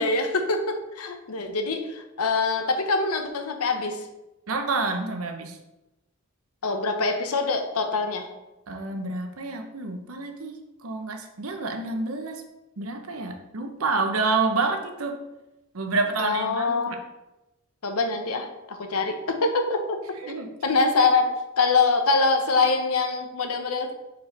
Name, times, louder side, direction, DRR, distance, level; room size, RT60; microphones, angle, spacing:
voice 1, 0.0-4.1 6.6-8.3 16.2-17.0 17.8-20.2 20.6-23.9, left 3 dB, 90° left, 6 dB, 0.8 m, -24 dB
voice 2, 4.5-5.6 8.7-12.4 12.8-15.2 15.7-17.0 20.2-20.5, right 3 dB, 75° right, 4 dB, 0.9 m, -28 dB
5.2 x 4.5 x 5.2 m, 0.98 s
head